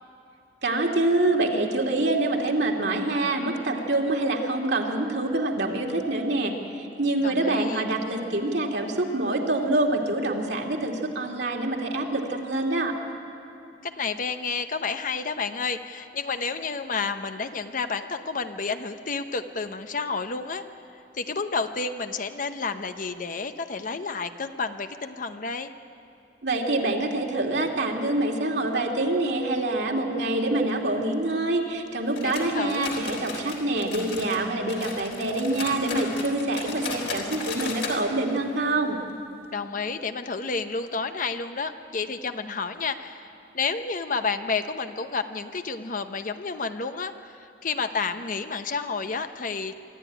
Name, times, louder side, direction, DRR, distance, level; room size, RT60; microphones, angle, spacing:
voice 1, 0.6-13.0 26.4-39.0, right 2 dB, 65° right, 1 dB, 2.5 m, -26 dB
voice 2, 7.2-7.8 13.8-20.6 21.1-25.7 32.2-32.9 39.5-49.7, left 4 dB, 50° left, 8 dB, 0.9 m, -30 dB
sound 1, 32.1-34.4 34.7-38.0 38.3-38.4 38.8-38.9 39.4-39.5, left 4 dB, 65° left, 3.7 m, -35 dB
24.5 x 13.5 x 10.0 m, 2.9 s
head